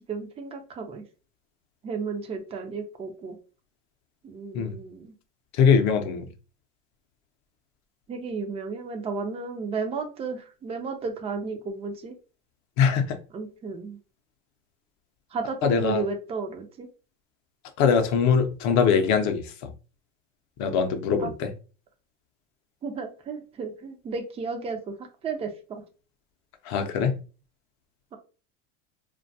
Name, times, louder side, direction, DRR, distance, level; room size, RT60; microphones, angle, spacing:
voice 1, 0.1-1.0 1.8-3.4 4.2-5.1 8.1-12.2 13.3-14.0 15.3-16.9 21.2-21.3 22.8-24.9 25.2-25.8, right 4 dB, 15° right, 0.3 m, -33 dB
voice 2, 5.5-6.3 12.8-13.2 15.6-16.0 17.8-19.7 20.6-21.5 26.6-27.1, left 6 dB, 50° left, 0.5 m, -22 dB
2.5 x 2.2 x 2.6 m
supercardioid pair, 115°, 37 cm